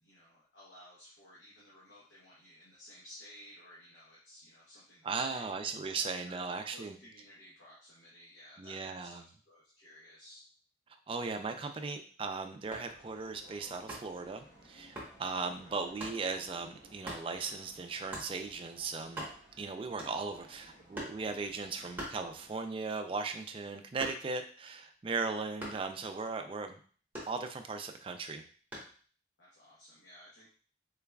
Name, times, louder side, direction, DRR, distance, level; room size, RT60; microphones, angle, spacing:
voice 1, 0.0-5.4 6.0-6.4 6.7-10.4 11.7-11.9 15.4-15.5 20.4-20.8 21.7-21.9 29.4-30.5, left 1 dB, 85° left, -7 dB, 1.1 m, -56 dB
voice 2, 5.0-7.0 8.6-9.3 11.1-19.3 19.6-26.8 27.3-28.4, right 4 dB, 30° right, 6 dB, 0.3 m, -37 dB
sound 1, 12.7-22.5, right 1 dB, 20° left, 1.7 m, -59 dB
sound 2, 12.7-13.0 13.9-14.2 15.0-15.2 16.0-16.2 17.0-17.3 18.1-18.4 18.8-18.9 19.0-19.6 20.0-20.4 20.9-21.3 22.0-22.7 23.1-24.5 25.6-25.9 27.1-27.8 28.7-29.0, right 1 dB, 10° right, 1.1 m, -43 dB
3.9 x 3.4 x 2.3 m, 0.43 s
head